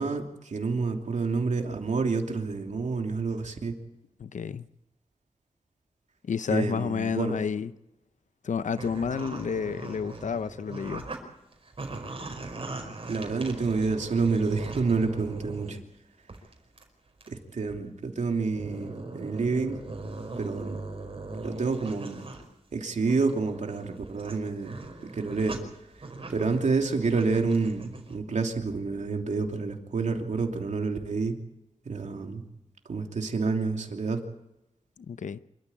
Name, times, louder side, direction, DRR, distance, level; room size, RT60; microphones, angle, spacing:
voice 1, 0.0-3.7 6.5-7.4 13.1-15.8 17.3-19.8 20.4-20.8 21.4-22.2 22.7-24.7 25.0-25.6 26.3-31.4 31.8-32.4 32.9-34.2, right 4 dB, 75° right, 3.0 m, -28 dB
voice 2, 4.2-4.7 6.2-7.7 8.4-11.1 35.1-35.4, left 6 dB, 85° left, 0.7 m, -30 dB
sound 1, 8.8-11.2 11.5-15.8 16.3-16.8 17.2-17.3 17.7-17.8 18.4-22.4 22.9-28.2, right 2 dB, 50° right, 5.2 m, -40 dB
26.5 x 14.0 x 8.7 m
wide cardioid pair, 110°, 12 cm